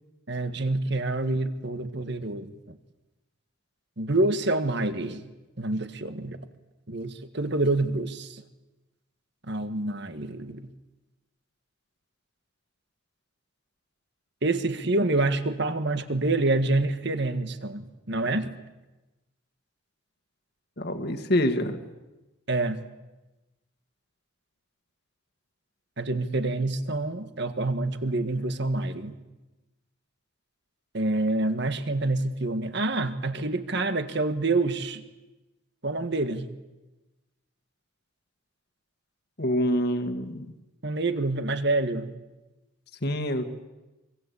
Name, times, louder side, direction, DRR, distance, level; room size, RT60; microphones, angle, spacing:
voice 1, 0.3-2.8 4.0-5.3 5.6-6.4 6.9-8.4 9.5-10.7 14.4-18.5 22.5-22.8 26.0-29.2 30.9-35.0 35.8-36.5 40.8-42.1, right 2 dB, 55° right, 1.7 m, -27 dB
voice 2, 20.8-21.8 39.4-40.5 43.0-43.4, equal, 50° left, 2.0 m, -26 dB
25.0 x 24.5 x 8.5 m
head